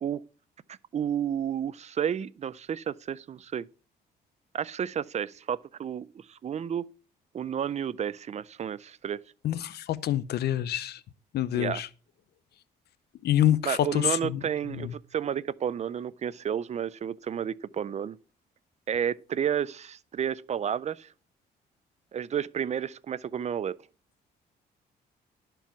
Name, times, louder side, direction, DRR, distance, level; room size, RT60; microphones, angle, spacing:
voice 1, 0.7-3.7 4.5-6.9 7.3-9.2 11.5-11.8 13.6-18.2 18.9-21.1 22.1-23.8, right 8 dB, 40° right, 0.4 m, -31 dB
voice 2, 9.4-11.0 11.3-11.9 13.2-14.4 14.8-14.9, left 12 dB, 75° left, 0.7 m, -26 dB
11.5 x 4.6 x 5.9 m
cardioid pair, 85°, 17 cm